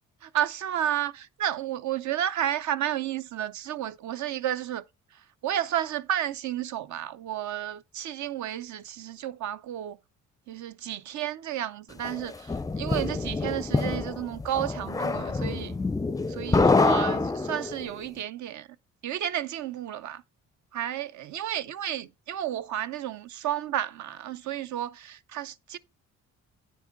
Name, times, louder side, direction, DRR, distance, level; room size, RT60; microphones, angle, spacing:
voice 1, 0.2-4.8 5.1-10.0 10.5-15.8 16.3-18.7 19.0-20.2 20.7-25.8, right 11 dB, 70° right, 0.7 m, -32 dB
sound 1, 12.0-17.9, left 3 dB, 10° left, 0.4 m, -26 dB
9.3 x 4.8 x 5.1 m
cardioid pair, 90°, 30 cm